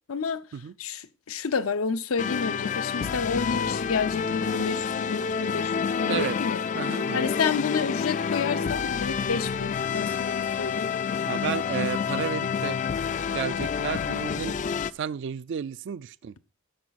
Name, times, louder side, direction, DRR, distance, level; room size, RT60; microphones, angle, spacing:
voice 1, 0.1-0.4 0.8-10.9, left 5 dB, 85° left, 0.7 m, -30 dB
sound 1, 2.2-14.9, left 6 dB, 35° left, 0.3 m, -28 dB
voice 2, 6.8-7.3 11.3-12.8 13.3-14.5 14.9-16.4, right 7 dB, 60° right, 0.3 m, -32 dB
10.5 x 7.0 x 4.1 m
head